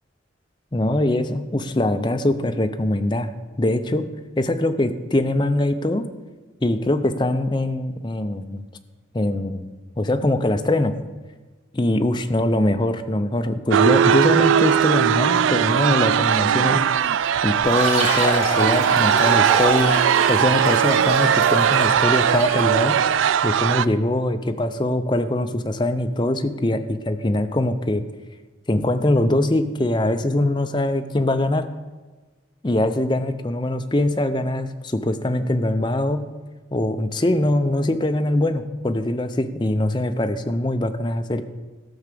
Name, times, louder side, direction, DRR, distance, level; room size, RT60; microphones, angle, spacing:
voice 1, 0.7-4.1 4.4-6.1 6.6-8.6 9.1-9.7 10.0-11.0 11.7-16.9 17.4-20.0 20.3-23.0 23.4-28.0 28.7-31.7 32.6-36.2 36.7-41.4, left 1 dB, 25° left, 8 dB, 0.6 m, -22 dB
sound 1, 13.7-23.9, right 8 dB, 80° right, 0.3 m, -19 dB
Fill (with liquid), 17.6-22.7, right 1 dB, 35° right, 4.6 m, -27 dB
13.0 x 5.9 x 6.8 m, 1.3 s
head